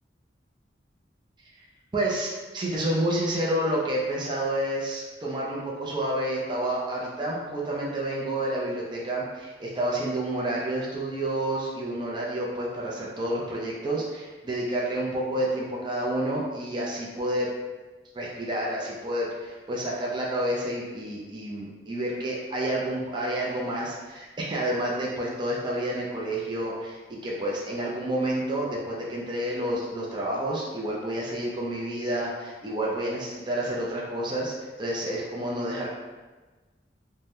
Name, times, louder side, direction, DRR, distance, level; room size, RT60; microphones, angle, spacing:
voice 1, 1.9-17.5 18.1-35.9, right 1 dB, 25° right, -4 dB, 0.4 m, -29 dB
2.7 x 2.1 x 3.4 m, 1.3 s
head